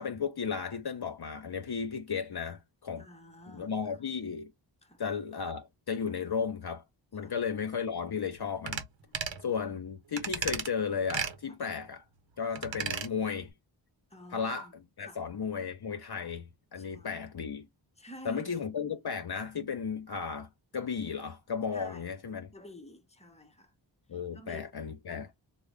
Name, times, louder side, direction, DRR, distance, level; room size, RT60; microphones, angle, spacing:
voice 1, 0.0-3.1 3.5-4.5 5.0-6.8 7.1-8.8 9.4-12.0 12.4-13.5 14.3-17.7 18.2-22.5 24.1-25.3, left 6 dB, 50° left, 0.8 m, -34 dB
voice 2, 3.0-3.7 4.8-5.0 7.2-7.3 9.1-9.4 11.5-11.6 14.1-14.7 15.0-15.2 16.8-17.1 18.0-18.5 21.7-22.0 22.5-23.7 24.3-24.7 25.1-25.4, equal, 15° left, 1.0 m, -50 dB
sound 1, 8.7-8.9 9.1-9.4 10.2-10.7 11.1-11.4 12.6-13.1 13.4-13.5, right 6 dB, 65° right, 0.8 m, -34 dB
3.3 x 2.1 x 3.4 m
cardioid pair, 45°, 48 cm